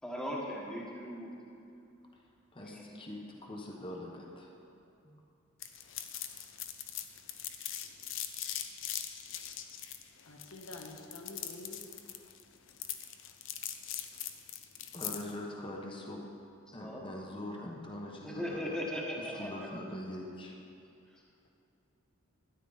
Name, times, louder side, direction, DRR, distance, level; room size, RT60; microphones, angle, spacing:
voice 1, 0.0-1.3 2.6-3.1 16.8-17.3 18.2-19.7 21.1-21.2, equal, 5° left, -4 dB, 1.4 m, -39 dB
voice 2, 2.5-4.6 5.0-5.2 14.9-16.2 16.7-18.8 19.2-20.6, left 1 dB, 25° left, -1 dB, 1.1 m, -43 dB
sound 1, 5.6-15.3, left 10 dB, 65° left, 0.7 m, -41 dB
voice 3, 10.2-11.9, left 2 dB, 90° left, 1 dB, 1.3 m, -48 dB
13.0 x 10.5 x 4.0 m, 2.6 s
head